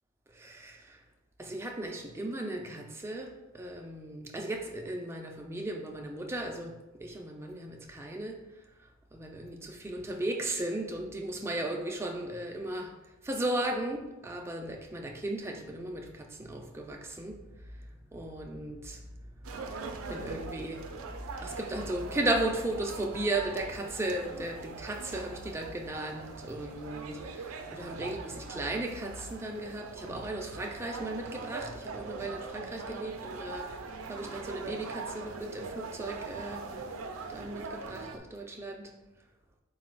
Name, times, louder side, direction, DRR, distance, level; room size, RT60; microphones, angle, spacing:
voice 1, 0.3-1.0 1.4-8.4 9.1-12.9 13.2-17.4 18.1-19.0 20.1-20.9 21.4-33.7 34.1-36.7 37.3-38.9, right 1 dB, 10° right, 0.4 m, -36 dB
sound 1, 19.4-38.2, right 4 dB, 75° right, 0.4 m, -42 dB
4.1 x 2.3 x 4.4 m
head